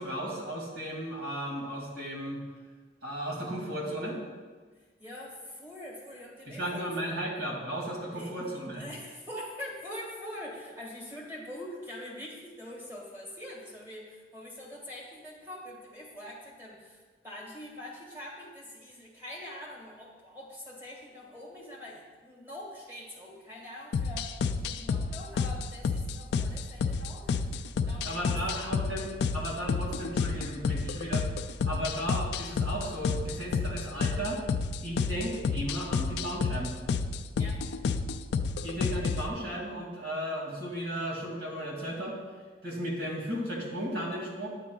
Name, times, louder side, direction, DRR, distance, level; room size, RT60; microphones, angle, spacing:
voice 1, 0.0-2.4 3.0-4.2 6.5-8.8 28.0-29.1 29.3-31.3 31.6-34.4 34.8-36.7 38.6-42.2 42.6-44.5, equal, 75° right, -2 dB, 2.1 m, -35 dB
voice 2, 5.0-7.1 8.1-8.4 8.8-24.3 24.6-27.5 27.9-28.7 37.4-37.6, left 1 dB, 10° right, -3 dB, 1.6 m, -44 dB
sound 1, 23.9-39.3, left 5 dB, 70° left, 0.3 m, -30 dB
9.5 x 7.5 x 2.3 m, 1.4 s
head